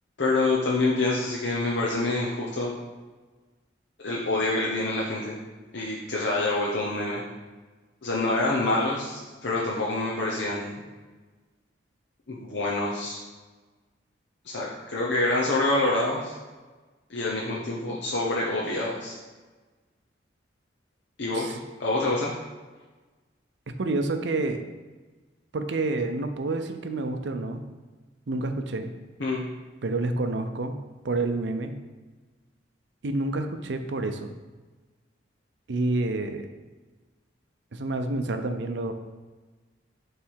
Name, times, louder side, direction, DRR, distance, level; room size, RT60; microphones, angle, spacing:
voice 1, 0.2-2.8 4.0-5.4 5.7-7.2 8.0-10.8 12.3-13.2 14.4-16.4 17.1-19.2 21.2-22.3 29.2-29.4, left 2 dB, 65° left, -5 dB, 0.8 m, -26 dB
voice 2, 23.8-24.6 25.5-27.6 28.3-28.9 29.8-30.8 31.0-31.7 33.0-34.4 35.7-36.5 37.7-38.9, right 2 dB, 70° right, 7 dB, 0.5 m, -28 dB
7.2 x 3.3 x 4.5 m, 1.3 s
head